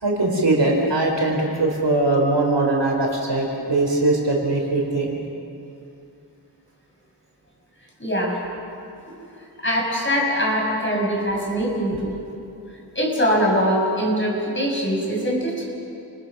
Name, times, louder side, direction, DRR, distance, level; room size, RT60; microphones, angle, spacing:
voice 1, 0.0-5.2, right 2 dB, 75° right, 0 dB, 4.4 m, -21 dB
voice 2, 8.0-8.4 9.6-12.1 12.9-15.6, equal, 25° left, -2 dB, 6.5 m, -22 dB
30.0 x 19.5 x 6.1 m, 2.7 s
wide cardioid pair, 70°, 42 cm